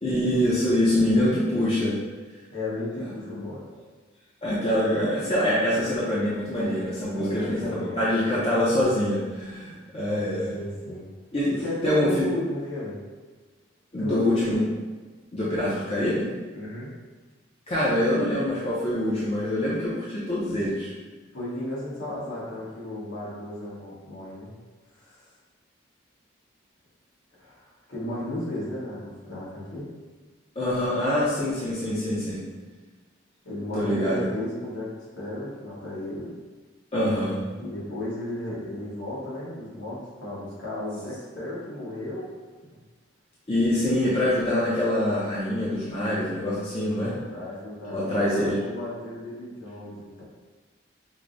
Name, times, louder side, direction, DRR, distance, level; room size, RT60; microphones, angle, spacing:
voice 1, 0.0-2.0 4.4-7.7 8.0-10.5 11.3-11.5 11.8-12.3 13.9-14.8 15.3-16.3 17.7-20.9 30.6-32.4 33.7-34.2 36.9-37.4 43.5-47.1 47.9-48.7, left 1 dB, 30° left, -8 dB, 0.5 m, -25 dB
voice 2, 2.5-3.6 7.1-8.0 10.2-11.1 11.5-13.0 14.0-14.6 16.5-16.9 21.3-24.5 24.9-25.2 27.4-29.9 33.4-36.3 37.6-42.3 47.0-50.2, left 1 dB, 70° left, -7 dB, 1.1 m, -34 dB
4.6 x 2.0 x 2.5 m, 1.3 s
head